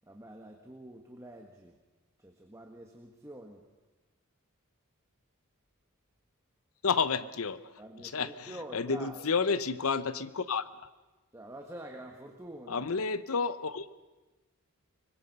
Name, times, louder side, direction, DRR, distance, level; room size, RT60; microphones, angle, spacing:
voice 1, 0.1-1.7 2.2-3.6 7.8-9.3 11.3-12.9, right 1 dB, 15° right, 2 dB, 1.5 m, -47 dB
voice 2, 6.8-7.6 8.0-10.6 12.7-13.9, left 5 dB, 80° left, 14 dB, 0.9 m, -30 dB
24.5 x 21.0 x 5.5 m, 1.1 s
head